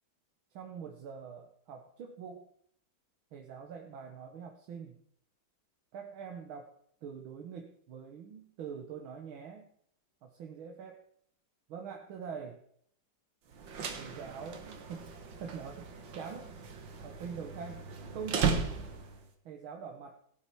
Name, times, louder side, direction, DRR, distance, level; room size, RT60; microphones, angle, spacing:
voice 1, 0.5-2.5 3.3-5.0 5.9-6.7 7.0-9.7 10.2-11.0 11.7-12.6 14.0-16.6 17.0-18.7 19.5-20.2, right 6 dB, 85° right, 3 dB, 1.9 m, -44 dB
sound 1, 13.5-19.3, right 5 dB, 70° right, 2.1 m, -36 dB
17.5 x 8.7 x 4.7 m, 0.67 s
omnidirectional pair, 2.2 m